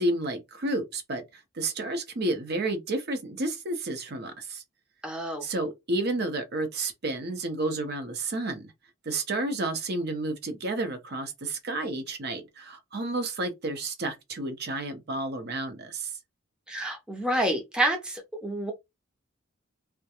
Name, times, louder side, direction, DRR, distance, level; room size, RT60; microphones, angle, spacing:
voice 1, 0.0-4.6 5.4-8.7 9.0-16.1, right 2 dB, 55° right, 0.7 m, -31 dB
voice 2, 5.0-5.5 16.7-18.7, right 1 dB, 5° right, 0.5 m, -28 dB
2.3 x 2.1 x 2.8 m
head